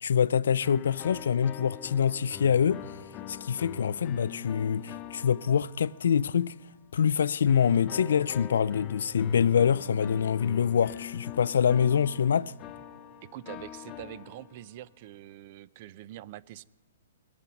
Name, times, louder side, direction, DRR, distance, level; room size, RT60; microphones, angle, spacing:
voice 1, 0.0-2.8 3.3-6.5 6.9-12.5, left 7 dB, 75° left, 0.3 m, -25 dB
sound 1, 0.6-6.4 7.5-14.9, left 10 dB, 20° left, 0.5 m, -44 dB
voice 2, 13.2-16.6, right 14 dB, 35° right, 0.4 m, -44 dB
22.5 x 8.4 x 5.2 m
hypercardioid pair, 165°, 0 cm